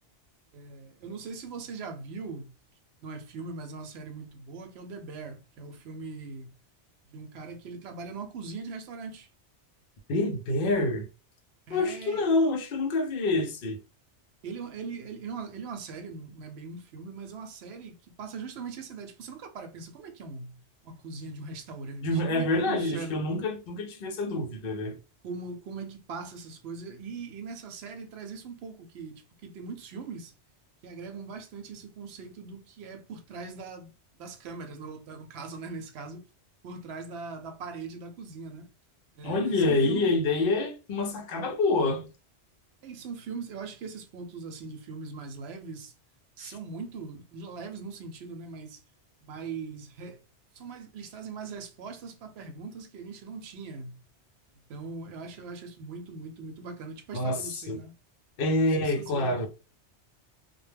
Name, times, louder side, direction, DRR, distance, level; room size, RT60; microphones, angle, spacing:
voice 1, 0.5-2.5 3.0-6.5 7.1-9.3 11.7-12.2 14.4-20.6 20.8-23.2 25.2-30.3 30.8-36.2 36.6-38.7 39.1-40.2 42.8-45.9 46.4-48.8 49.2-50.2 50.5-54.0 54.7-57.9 58.6-59.5, right 4 dB, 70° right, 0.8 m, -40 dB
voice 2, 10.1-11.1 11.7-13.8 22.0-25.0 39.2-42.1 46.4-46.6 57.1-57.8 58.4-59.5, left 2 dB, 60° left, 0.7 m, -27 dB
2.2 x 2.1 x 3.2 m
omnidirectional pair, 1.2 m